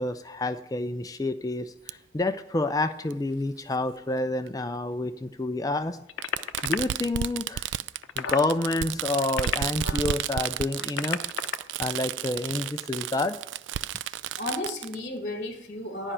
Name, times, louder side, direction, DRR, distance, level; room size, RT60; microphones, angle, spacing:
voice 1, 0.0-6.0 6.6-7.7 8.2-11.2 11.8-13.4, left 2 dB, 20° left, 10 dB, 0.4 m, -29 dB
Fireworks, 1.9-2.0 3.1-3.2 4.5-4.6 6.2-14.9, right 11 dB, 85° right, 0.3 m, -32 dB
sound 1, 6.1-6.8 7.9-8.5 9.1-10.1 10.7-11.6 12.7-12.9, left 7 dB, 90° left, 0.6 m, -32 dB
voice 2, 13.9-16.1, left 1 dB, 45° left, 4 dB, 1.3 m, -34 dB
11.5 x 5.4 x 8.7 m, 0.84 s
head